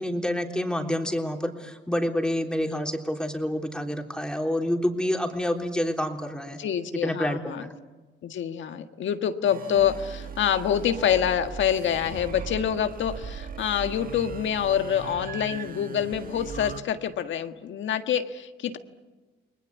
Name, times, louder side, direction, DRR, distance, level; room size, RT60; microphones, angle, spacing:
voice 1, 0.0-6.6 7.0-7.7, left 1 dB, 5° left, 3 dB, 3.5 m, -28 dB
voice 2, 6.6-7.6 8.2-18.8, left 9 dB, 70° left, 7 dB, 1.7 m, -26 dB
sound 1, 9.4-16.8, right 6 dB, 45° right, 1.9 m, -39 dB
29.5 x 21.0 x 8.3 m, 1.2 s
cardioid pair, 90°, 20 cm